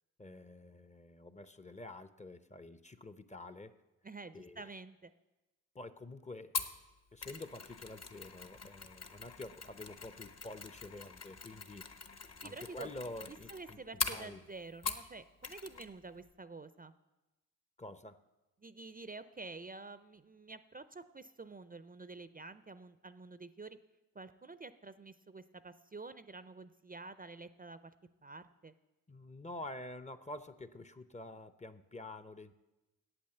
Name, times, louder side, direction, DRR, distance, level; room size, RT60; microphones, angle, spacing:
voice 1, 0.2-3.8 4.3-4.7 5.7-6.5 7.1-11.9 12.4-13.8 14.1-14.4 17.8-18.2 29.1-32.5, left 2 dB, 20° left, 12 dB, 0.6 m, -48 dB
voice 2, 4.0-5.1 12.4-12.9 13.3-16.9 18.6-23.8 24.1-27.9 28.2-28.7, right 3 dB, 25° right, 13 dB, 0.5 m, -49 dB
Mechanisms, 6.5-15.1 15.4-16.3, left 5 dB, 45° left, 1.0 m, -43 dB
8.8 x 8.4 x 7.8 m, 1.0 s
cardioid pair, 55°, 36 cm